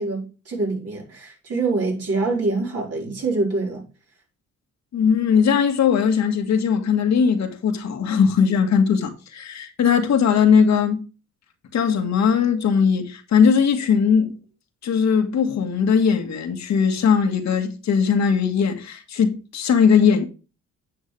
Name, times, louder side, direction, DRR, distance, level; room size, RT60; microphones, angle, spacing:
voice 1, 0.0-3.8, right 3 dB, 50° right, 4.7 m, -25 dB
voice 2, 4.9-11.0 11.7-14.4 14.8-20.3, left 6 dB, 65° left, 1.8 m, -19 dB
9.3 x 7.0 x 3.4 m
cardioid pair, 90°, 30 cm